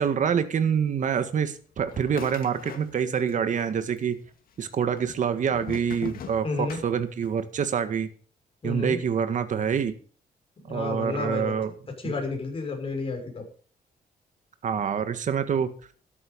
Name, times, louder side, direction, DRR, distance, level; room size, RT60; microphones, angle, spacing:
voice 1, 0.0-4.2 4.6-8.1 8.6-9.9 10.7-11.7 12.0-12.1 14.6-15.7, right 7 dB, 55° right, 10 dB, 1.8 m, -26 dB
sound 1, 1.9-3.3 3.6-4.3 5.0-7.4, left 7 dB, 70° left, 2.2 m, -41 dB
voice 2, 6.4-6.8 8.6-9.0 10.6-11.5 12.0-13.4, left 4 dB, 35° left, 2 dB, 5.7 m, -31 dB
13.5 x 11.5 x 5.3 m, 0.43 s
cardioid pair, 135°, 15 cm